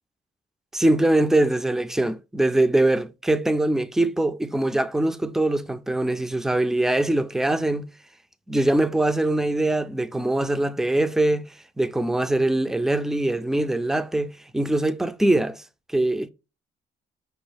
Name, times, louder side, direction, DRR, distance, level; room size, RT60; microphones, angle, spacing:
voice 1, 0.7-7.8 8.5-11.4 11.8-15.6 15.9-16.3, right 1 dB, ahead, 0.3 m, -22 dB
5.5 x 2.3 x 3.2 m
cardioid pair, 90°, 20 cm